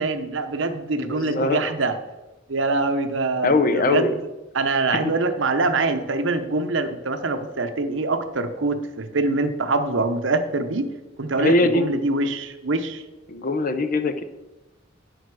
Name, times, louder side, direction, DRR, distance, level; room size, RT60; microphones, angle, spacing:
voice 1, 0.0-1.9 2.5-4.2 4.5-10.9 11.2-13.0, right 3 dB, 75° right, 8 dB, 0.8 m, -24 dB
voice 2, 1.0-1.6 3.4-4.1 4.9-5.1 11.4-11.8 13.3-14.2, left 2 dB, 45° left, 9 dB, 0.7 m, -21 dB
9.2 x 6.4 x 4.8 m, 1.1 s
head